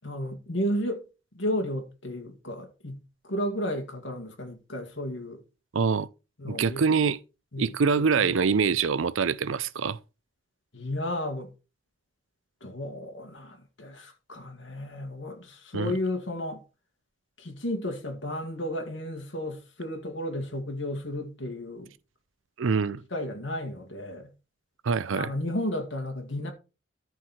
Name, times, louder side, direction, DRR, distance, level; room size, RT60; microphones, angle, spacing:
voice 1, 0.0-1.0 1.3-5.4 6.4-6.8 7.5-8.5 10.7-11.5 12.6-16.6 17.4-21.9 23.1-24.3 25.1-26.5, left 1 dB, 70° left, 2.1 m, -33 dB
voice 2, 5.7-6.1 6.5-7.2 7.6-10.0 15.7-16.0 22.6-23.0 24.8-25.3, right 5 dB, 85° right, 0.5 m, -25 dB
13.5 x 4.6 x 4.4 m
head